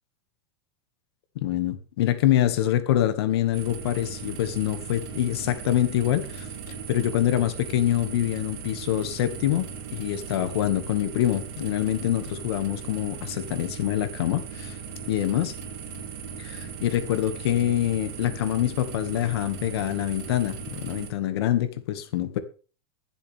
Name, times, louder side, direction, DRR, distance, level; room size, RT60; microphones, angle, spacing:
voice 1, 1.4-14.8 15.1-15.5 16.4-22.4, left 12 dB, 75° left, 2.2 m, -25 dB
sound 1, 3.5-21.1, right 6 dB, 60° right, 3.5 m, -38 dB
23.0 x 7.8 x 3.7 m
supercardioid pair, 140°, 13 cm